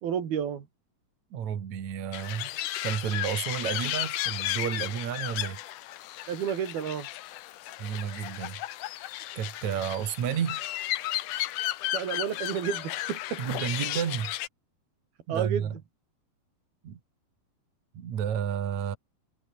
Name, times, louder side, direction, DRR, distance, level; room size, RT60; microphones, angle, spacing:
voice 1, 0.0-0.7 6.3-7.1 11.9-13.4 15.3-15.7, right 8 dB, 70° right, 4.5 m, -31 dB
voice 2, 1.3-5.6 7.8-8.6 9.4-10.6 13.4-14.3 15.3-15.8 16.8-17.0 17.9-19.0, right 8 dB, 50° right, 3.2 m, -31 dB
sound 1, 2.1-14.5, left 15 dB, 70° left, 2.2 m, -34 dB
omnidirectional pair, 4.5 m